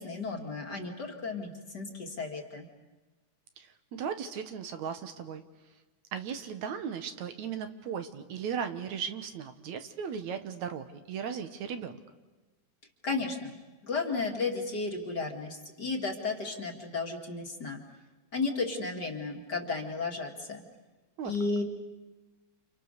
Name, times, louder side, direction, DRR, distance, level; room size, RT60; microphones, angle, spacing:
voice 1, 0.0-2.7 13.0-13.6 13.8-17.8 18.3-20.6 21.2-21.6, left 3 dB, 35° left, 2 dB, 2.6 m, -33 dB
voice 2, 3.6-5.4 6.1-12.0 21.2-21.3, right 7 dB, 70° right, 8 dB, 2.6 m, -37 dB
30.0 x 28.5 x 6.7 m, 1.2 s
omnidirectional pair, 3.5 m